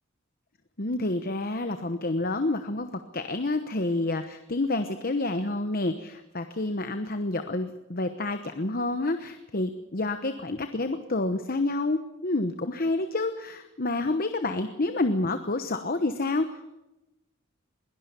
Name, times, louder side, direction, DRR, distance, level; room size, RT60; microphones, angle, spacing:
voice 1, 0.8-16.7, left 2 dB, 45° left, 8 dB, 1.0 m, -29 dB
22.0 x 17.5 x 6.9 m, 0.96 s
head